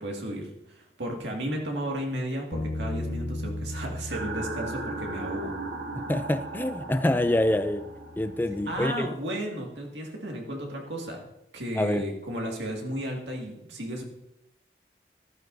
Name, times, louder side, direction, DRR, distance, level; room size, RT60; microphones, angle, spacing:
voice 1, 0.0-5.6 8.7-11.2 11.5-14.0, equal, 80° right, 1 dB, 2.1 m, -34 dB
Bass guitar, 2.5-8.8, left 1 dB, 55° left, 1.3 m, -38 dB
sound 1, 4.1-9.3, right 3 dB, 60° right, 1.2 m, -38 dB
voice 2, 6.0-7.9 8.2-9.1 11.8-12.0, left 1 dB, 10° left, 10 dB, 0.4 m, -26 dB
15.0 x 12.0 x 2.7 m, 0.84 s
head